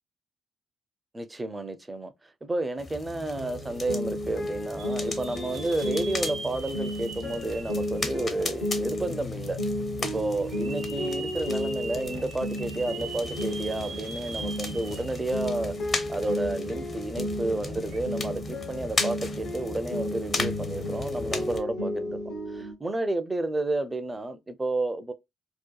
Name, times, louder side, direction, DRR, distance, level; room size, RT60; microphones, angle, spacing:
voice 1, 1.1-9.6 10.0-22.2 22.5-25.1, right 2 dB, 20° right, 0.5 m, -31 dB
sound 1, 2.8-21.6, left 3 dB, 40° left, 0.6 m, -37 dB
sound 2, 3.4-22.7, left 1 dB, 80° left, 0.9 m, -33 dB
sound 3, 4.8-8.7 9.3-9.4 10.4-15.4 15.8-15.9 17.8-18.0, right 4 dB, 85° right, 0.9 m, -41 dB
2.8 x 2.2 x 2.2 m
cardioid pair, 90°, 0 cm